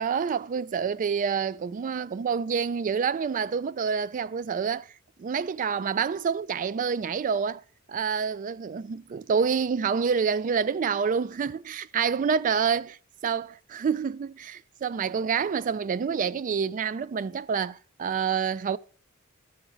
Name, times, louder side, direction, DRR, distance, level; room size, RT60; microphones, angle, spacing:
voice 1, 0.0-4.9 5.2-7.6 7.9-12.8 13.2-18.8, right 6 dB, 40° right, 0.3 m, -27 dB
14.0 x 4.9 x 3.8 m
head